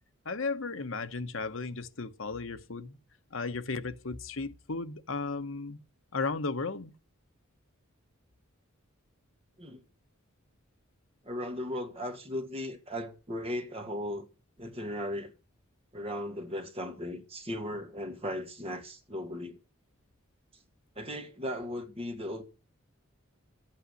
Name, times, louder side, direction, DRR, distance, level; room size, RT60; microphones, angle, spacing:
voice 1, 0.2-3.0 3.3-5.8 6.1-6.9, left 3 dB, 70° left, 1.1 m, -35 dB
voice 2, 11.2-14.3 14.6-15.3 15.9-19.6 21.0-22.4, left 1 dB, 30° right, 2.0 m, -37 dB
13.0 x 8.9 x 9.7 m
head